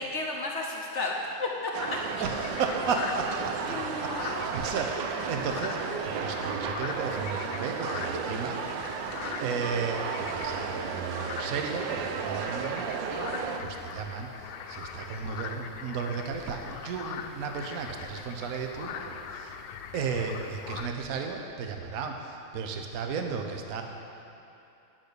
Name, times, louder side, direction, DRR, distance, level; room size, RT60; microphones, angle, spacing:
voice 1, 0.0-1.7 2.2-2.3 3.7-4.4, left 2 dB, 60° left, 0 dB, 0.7 m, -33 dB
sound 1, 1.7-13.6, right 6 dB, 75° right, 1.3 m, -34 dB
sound 2, 1.8-20.9, left 7 dB, 85° left, 1.4 m, -41 dB
voice 2, 2.2-3.7 4.0-5.8 6.0-8.9 9.4-13.0 13.6-19.5 19.9-23.8, right 5 dB, 55° right, 3 dB, 1.1 m, -34 dB
10.0 x 6.3 x 6.8 m, 2.8 s
omnidirectional pair, 2.2 m